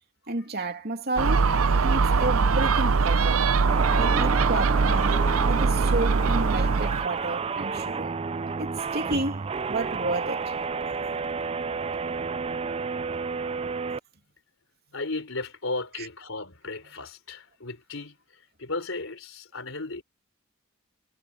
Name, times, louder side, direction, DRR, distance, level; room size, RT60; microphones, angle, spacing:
voice 1, 0.3-1.5 1.8-3.4 3.9-5.2 5.5-8.2 8.6-10.5 16.0-16.1, right 2 dB, 50° right, 3.0 m, -31 dB
Gull seagull, 1.2-7.1, right 4 dB, 80° right, 0.7 m, -22 dB
sound 1, 3.7-14.0, right 4 dB, 25° right, 0.4 m, -31 dB
voice 2, 14.9-20.0, left 3 dB, 70° left, 4.0 m, -35 dB
head